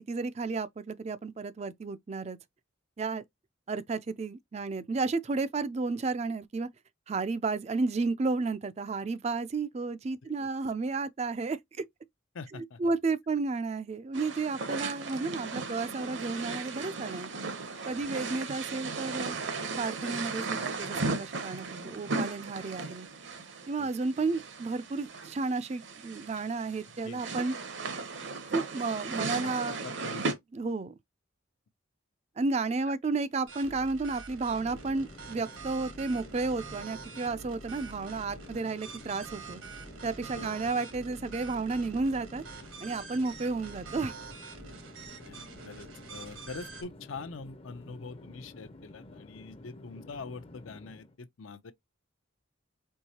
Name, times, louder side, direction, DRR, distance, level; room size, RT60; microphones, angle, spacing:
voice 1, 0.1-2.4 3.0-3.2 3.7-6.7 7.1-11.8 12.5-17.3 17.9-19.4 19.7-23.1 23.7-27.5 28.5-29.8 30.5-30.9 32.4-39.6 40.0-42.4 42.8-44.1, right 3 dB, 30° right, 0.3 m, -32 dB
voice 2, 12.3-12.8 17.9-18.2 23.8-23.9 26.9-27.2 29.4-30.4 40.3-40.9 45.2-51.7, left 4 dB, 75° left, 0.6 m, -44 dB
sound 1, 14.1-30.3, right 3 dB, 60° right, 0.8 m, -36 dB
sound 2, 33.5-46.8, right 4 dB, 75° right, 1.2 m, -46 dB
Conversation / Chatter / Fixed-wing aircraft airplane, 34.5-51.2, left 2 dB, 30° left, 0.5 m, -51 dB
4.6 x 3.1 x 2.8 m
head